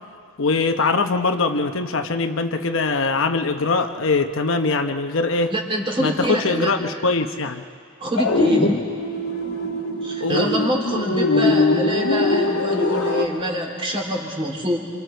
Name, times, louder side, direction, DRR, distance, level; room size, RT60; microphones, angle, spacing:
voice 1, 0.4-5.5 6.0-7.6 10.2-10.5, left 3 dB, 65° left, 6 dB, 0.9 m, -22 dB
voice 2, 5.5-6.7 8.0-8.8 10.0-14.8, equal, 25° right, 0 dB, 3.4 m, -25 dB
sound 1, 8.2-13.2, left 2 dB, 90° left, 1.8 m, -21 dB
28.0 x 27.0 x 4.6 m, 2.2 s
head